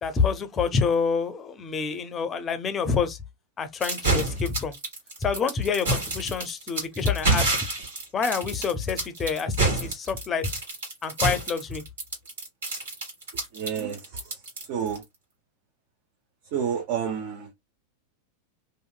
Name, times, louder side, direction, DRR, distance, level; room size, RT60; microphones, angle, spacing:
voice 1, 0.0-3.2 3.6-4.7 5.2-7.5 8.1-10.5 11.0-11.8, left 5 dB, 25° left, 0.5 m, -27 dB
sound 1, 3.8-15.0, right 3 dB, 65° right, 1.6 m, -27 dB
voice 2, 13.5-14.4 14.7-15.0 16.5-17.5, right 8 dB, 45° right, 0.6 m, -30 dB
2.8 x 2.5 x 2.2 m
figure-of-eight pair, 90°, 0 cm